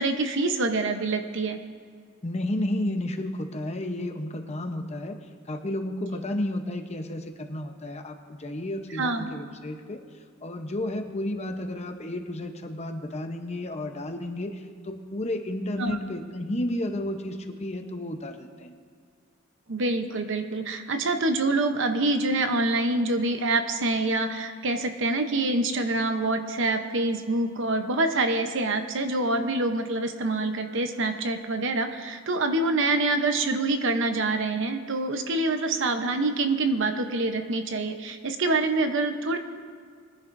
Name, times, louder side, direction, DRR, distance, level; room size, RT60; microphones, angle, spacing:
voice 1, 0.0-1.6 9.0-9.3 15.8-16.0 19.7-39.4, right 2 dB, 60° right, 7 dB, 0.9 m, -26 dB
voice 2, 2.2-5.2 5.5-10.0 10.4-18.7, left 1 dB, 30° left, 5 dB, 0.9 m, -32 dB
22.0 x 10.5 x 2.6 m, 2.1 s
head